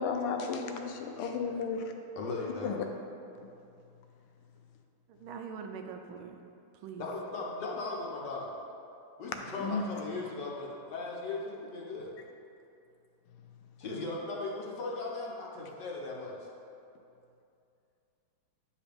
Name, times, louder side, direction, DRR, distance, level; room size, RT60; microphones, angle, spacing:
voice 1, 0.0-1.8 2.6-2.9 9.6-9.9, left 5 dB, 85° left, 4 dB, 1.6 m, -33 dB
voice 2, 2.2-2.8 7.0-8.5 9.2-12.1 13.8-16.4, left 3 dB, 60° left, -3 dB, 1.4 m, -37 dB
voice 3, 5.1-6.4 6.7-7.1 9.3-9.9, right 6 dB, 75° right, 4 dB, 1.3 m, -44 dB
9.6 x 5.0 x 3.5 m, 2.6 s
omnidirectional pair, 2.4 m